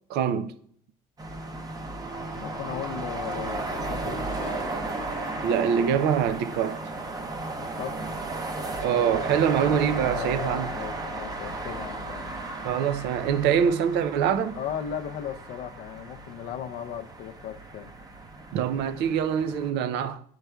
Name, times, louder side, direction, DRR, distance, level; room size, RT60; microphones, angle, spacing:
voice 1, 0.1-0.5 5.4-6.8 8.8-10.7 12.6-14.6 18.5-20.2, right 8 dB, 80° right, 0.4 m, -24 dB
sound 1, 1.2-19.7, right 2 dB, 20° right, 0.7 m, -35 dB
voice 2, 2.3-4.3 7.5-8.0 10.0-12.4 14.5-17.9, left 9 dB, 75° left, 0.6 m, -37 dB
sound 2, 4.0-9.7, left 3 dB, 30° left, 0.8 m, -50 dB
10.5 x 4.7 x 2.2 m
cardioid pair, 110°, 17 cm